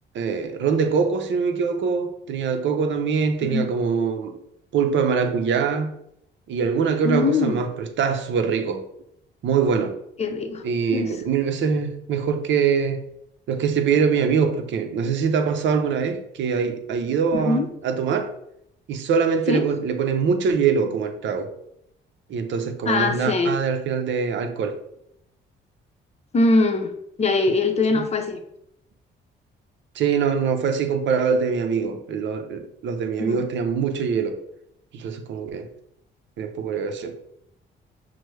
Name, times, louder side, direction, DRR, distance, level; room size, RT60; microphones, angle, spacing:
voice 1, 0.1-4.4 4.7-6.0 6.5-8.9 9.4-10.0 10.6-13.0 13.5-18.3 18.9-21.5 22.3-24.8 27.9-28.0 29.9-34.4 34.9-35.7 36.4-37.2, right 6 dB, 70° right, 0.6 m, -23 dB
voice 2, 7.0-7.6 10.2-10.6 10.9-11.1 17.3-17.7 19.5-19.6 22.9-23.5 26.3-26.9 27.2-28.4 33.2-33.5, left 3 dB, 35° left, 0.6 m, -22 dB
5.9 x 2.1 x 3.2 m
cardioid pair, 90°, 20 cm